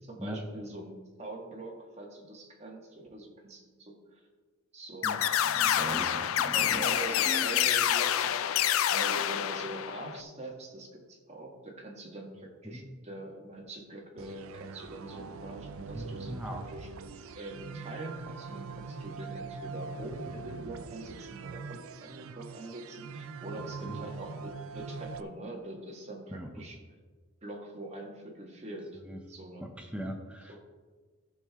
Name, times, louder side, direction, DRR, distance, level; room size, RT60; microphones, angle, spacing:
voice 1, 0.0-4.2 4.7-5.2 5.8-16.9 17.3-26.8 27.4-29.0 29.3-29.7 30.5-30.6, right 2 dB, 30° right, -1 dB, 1.8 m, -43 dB
sound 1, 5.0-10.2, left 10 dB, 80° left, 0.4 m, -27 dB
voice 2, 5.4-6.8 7.3-7.7 12.6-12.8 15.9-16.6 23.8-24.0 26.3-26.6 29.1-29.2 29.6-30.6, equal, 5° right, 2 dB, 0.8 m, -40 dB
sound 2, 14.2-25.2, right 4 dB, 80° right, 0.5 m, -42 dB
15.0 x 6.3 x 3.6 m, 1.4 s
head